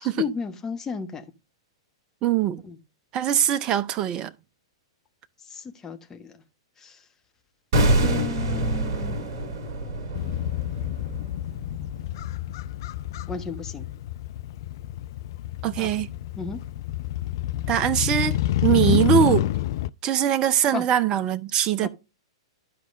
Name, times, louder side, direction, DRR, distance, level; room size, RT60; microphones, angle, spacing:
voice 1, 0.0-1.2 2.6-2.7 5.5-6.3 6.8-6.9 8.0-9.2 13.3-13.8 15.8-15.9 16.4-16.6 18.7-19.0 20.7-20.8 21.8-21.9, left 5 dB, 15° left, 1.2 m, -33 dB
voice 2, 2.2-2.6 3.1-4.3 15.6-16.1 17.7-19.4 20.0-21.9, right 10 dB, 30° right, 0.6 m, -22 dB
sound 1, 7.7-12.7 13.0-13.2, right 1 dB, 45° right, 1.9 m, -26 dB
Motorcycle, 10.1-19.9, left 14 dB, 50° left, 0.4 m, -28 dB
13.0 x 4.8 x 2.6 m
figure-of-eight pair, 105°, 3 cm